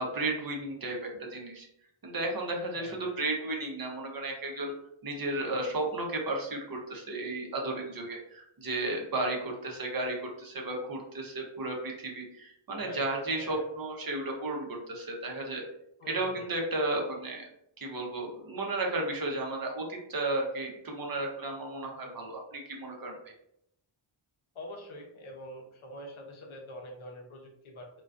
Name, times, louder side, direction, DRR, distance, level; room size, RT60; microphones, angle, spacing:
voice 1, 0.0-1.7 2.0-4.7 5.0-15.6 16.1-17.4 17.8-23.3, right 2 dB, 45° right, 0 dB, 0.6 m, -33 dB
voice 2, 2.7-3.2 12.8-13.0 13.4-13.7 16.0-16.5 24.5-27.9, equal, 70° left, 1 dB, 0.7 m, -45 dB
2.3 x 2.2 x 2.4 m, 0.76 s
wide cardioid pair, 75°, 50 cm